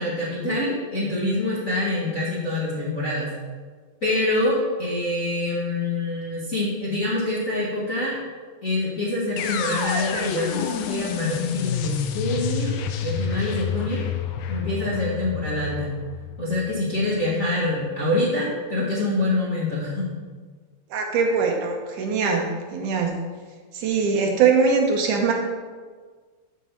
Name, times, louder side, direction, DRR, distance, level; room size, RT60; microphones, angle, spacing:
voice 1, 0.0-3.4 4.0-8.1 8.6-12.8 13.0-14.0 14.5-16.0 16.4-20.1, left 2 dB, 35° left, -8 dB, 1.4 m, -25 dB
sound 1, 9.4-17.3, left 7 dB, 85° left, 2.4 m, -29 dB
voice 2, 20.9-23.1 23.7-25.3, right 5 dB, 70° right, 1 dB, 2.3 m, -22 dB
9.8 x 4.7 x 7.2 m, 1.5 s
omnidirectional pair, 3.9 m